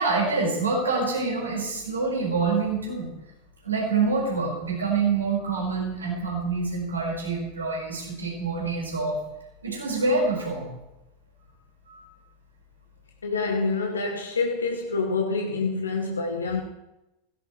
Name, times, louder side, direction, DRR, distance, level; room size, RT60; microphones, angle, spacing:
voice 1, 0.0-3.1 3.6-9.2 9.6-10.6 11.9-12.0, right 4 dB, 75° right, -2 dB, 5.3 m, -26 dB
voice 2, 13.2-16.6, left 4 dB, 75° left, 2 dB, 1.3 m, -27 dB
17.0 x 16.0 x 3.3 m, 0.98 s
figure-of-eight pair, 85°, 0 cm